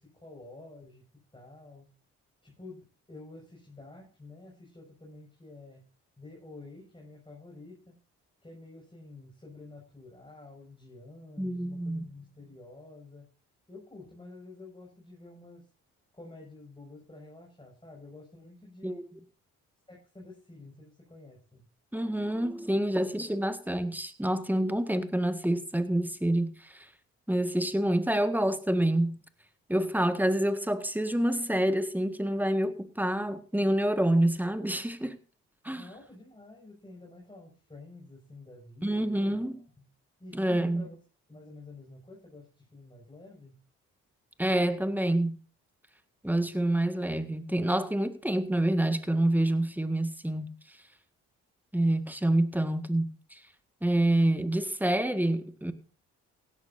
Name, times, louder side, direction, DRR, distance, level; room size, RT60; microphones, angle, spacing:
voice 1, 0.0-1.9 2.4-5.9 6.2-8.0 8.4-13.3 13.7-15.7 16.1-19.1 19.9-21.6 35.7-39.9 40.2-41.0 41.3-43.6, left 2 dB, 15° left, 6.5 m, -49 dB
voice 2, 11.4-12.1 18.8-19.0 21.9-26.9 27.3-29.2 29.7-35.2 35.6-35.8 38.8-39.5 40.3-40.9 44.4-45.4 46.2-50.5 51.7-53.4 53.8-55.7, right 1 dB, 5° right, 1.7 m, -27 dB
16.5 x 12.0 x 2.7 m
hypercardioid pair, 50°, 35 cm